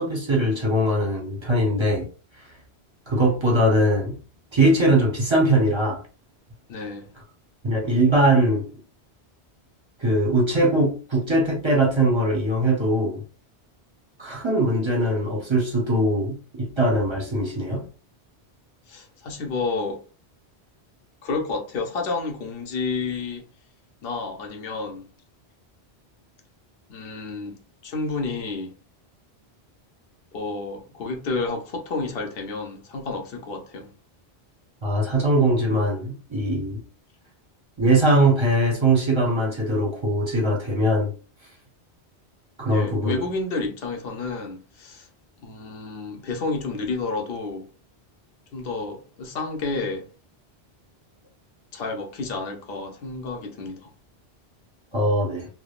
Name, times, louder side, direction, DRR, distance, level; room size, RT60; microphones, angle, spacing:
voice 1, 0.0-2.1 3.1-4.2 4.5-6.0 7.6-8.7 10.0-13.2 14.2-17.8 34.8-36.8 37.8-41.1 42.6-43.2 54.9-55.5, right 1 dB, 30° right, 0.7 m, -21 dB
voice 2, 6.7-7.1 18.9-20.0 21.2-23.5 24.0-25.1 26.9-28.7 30.3-33.9 42.7-45.1 45.4-47.7 48.5-50.1 51.7-53.9, left 3 dB, 65° left, 0.9 m, -30 dB
3.3 x 2.0 x 2.3 m
omnidirectional pair, 1.1 m